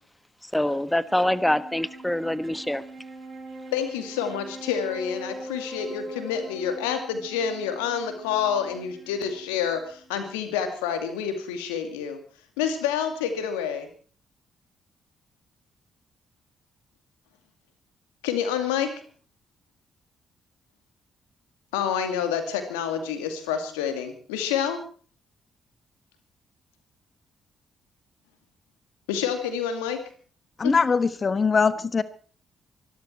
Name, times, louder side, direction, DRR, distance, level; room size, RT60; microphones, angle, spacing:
voice 1, 0.4-2.8, left 1 dB, 10° left, 15 dB, 1.3 m, -25 dB
Wind instrument woodwind instrument, 0.9-10.4, right 1 dB, 65° right, 7.3 m, -42 dB
voice 2, 3.7-12.2 12.6-13.9 18.2-18.9 21.7-24.8 29.1-30.0 30.6-30.7, left 8 dB, 80° left, 8 dB, 2.3 m, -28 dB
voice 3, 30.6-32.0, left 5 dB, 45° left, 15 dB, 1.1 m, -22 dB
24.0 x 12.5 x 4.4 m, 0.42 s
hypercardioid pair, 40°, 0 cm